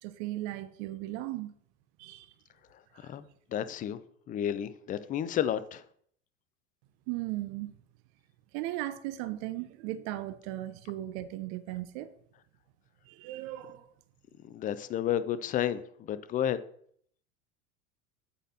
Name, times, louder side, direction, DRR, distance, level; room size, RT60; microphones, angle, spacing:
voice 1, 0.0-1.5 2.0-2.3 2.9-3.1 7.1-7.8 8.5-12.1 13.1-13.9, right 15 dB, 50° right, 0.7 m, -37 dB
voice 2, 3.5-4.0 4.3-5.8 14.4-16.6, left 10 dB, 20° left, 0.4 m, -31 dB
8.1 x 4.2 x 4.1 m
hypercardioid pair, 90°, 42 cm